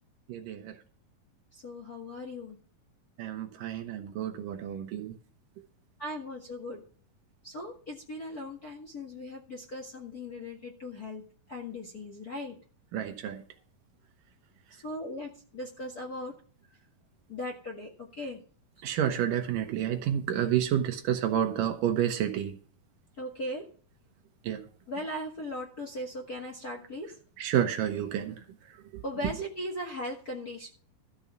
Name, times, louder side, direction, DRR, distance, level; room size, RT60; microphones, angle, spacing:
voice 1, 0.3-0.8 3.2-5.2 12.9-13.4 18.8-22.6 24.4-24.6 27.4-28.4 28.9-29.0, right 10 dB, 70° right, 2.5 m, -30 dB
voice 2, 1.5-2.6 6.0-6.8 7.4-11.2 11.5-12.5 14.7-16.3 17.3-18.4 23.2-23.7 24.9-27.2 29.0-30.7, left 1 dB, 35° left, 1.5 m, -38 dB
13.5 x 5.4 x 7.1 m
omnidirectional pair, 4.2 m